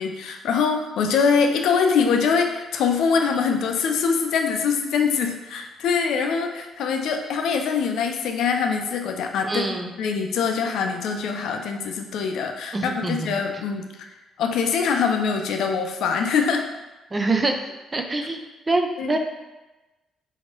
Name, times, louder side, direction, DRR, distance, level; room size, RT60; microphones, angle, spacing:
voice 1, 0.0-14.1 14.4-16.7 19.0-19.2, left 6 dB, 75° left, 4 dB, 0.4 m, -23 dB
voice 2, 9.4-9.9 12.7-13.4 17.1-17.6 17.9-19.2, right 2 dB, 20° right, 4 dB, 0.3 m, -25 dB
3.0 x 2.7 x 4.4 m, 1.1 s
cardioid pair, 150°, 0 cm